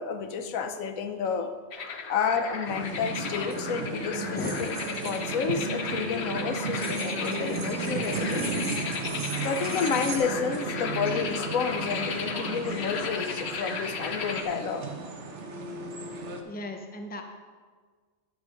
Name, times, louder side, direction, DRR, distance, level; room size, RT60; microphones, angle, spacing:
voice 1, 0.0-1.5 2.1-4.7 5.0-8.7 9.4-14.9, left 6 dB, 85° left, 8 dB, 1.2 m, -30 dB
sound 1, 1.7-14.4, left 5 dB, 55° left, 1.1 m, -35 dB
sound 2, 2.6-16.4, right 3 dB, 60° right, 1.3 m, -34 dB
sound 3, 3.4-3.5 4.4-5.3 6.7-10.2, right 4 dB, 85° right, 2.0 m, -40 dB
voice 2, 4.3-4.7 16.4-17.2, left 2 dB, 10° left, 4 dB, 0.6 m, -36 dB
11.0 x 6.5 x 5.1 m, 1.5 s
omnidirectional pair, 1.4 m